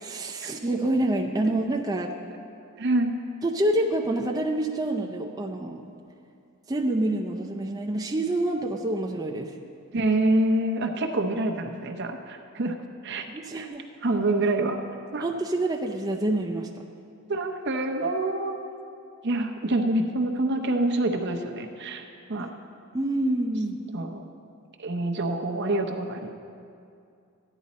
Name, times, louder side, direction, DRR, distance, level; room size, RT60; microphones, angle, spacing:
voice 1, 0.0-2.2 3.4-5.8 6.7-9.5 13.3-13.8 15.2-16.7 22.4-22.5 22.9-23.8, right 1 dB, 15° right, 1 dB, 0.5 m, -27 dB
voice 2, 2.8-3.1 9.9-12.7 13.0-13.2 13.5-13.7 14.0-14.8 15.1-15.3 17.3-18.6 19.2-22.0 22.3-22.5 23.9-24.2 24.8-26.3, right 2 dB, 50° right, 4 dB, 0.7 m, -26 dB
14.0 x 10.0 x 4.2 m, 2.5 s
head